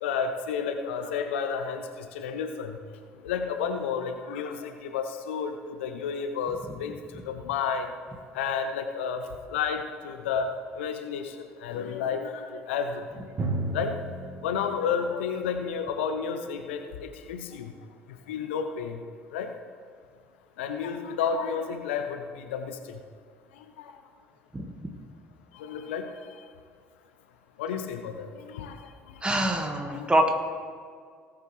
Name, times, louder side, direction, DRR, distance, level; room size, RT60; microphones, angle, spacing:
voice 1, 0.0-2.8 3.2-7.0 7.3-7.9 8.3-9.2 9.5-13.1 13.7-14.0 14.4-17.7 18.3-19.0 19.3-19.5 20.6-23.0 23.8-23.9 25.5-26.1 27.6-28.9 29.6-30.1, left 6 dB, 75° left, 7 dB, 0.7 m, -31 dB
Drum, 13.4-16.9, right 2 dB, 40° right, 1.4 m, -35 dB
voice 2, 29.2-30.3, right 1 dB, 15° right, 4 dB, 1.7 m, -25 dB
18.5 x 7.5 x 3.3 m, 2.1 s
figure-of-eight pair, 55°, 6 cm